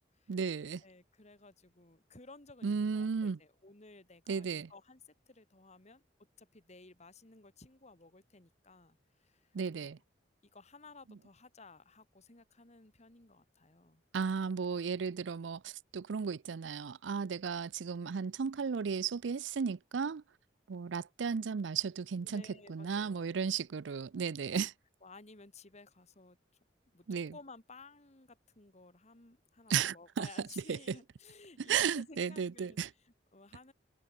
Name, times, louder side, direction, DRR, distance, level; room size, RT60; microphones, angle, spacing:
voice 1, 0.3-0.8 2.6-3.4 4.3-4.7 9.5-10.0 14.1-20.2 20.7-22.4 22.7-24.7 27.1-27.3 29.7-30.3 30.7-31.0 31.7-32.9, right 6 dB, 90° right, 0.5 m, -34 dB
voice 2, 0.8-6.0 6.4-10.0 10.5-14.0 22.2-23.6 24.2-24.6 25.0-26.4 26.9-33.7, left 3 dB, 40° left, 2.3 m, -56 dB
head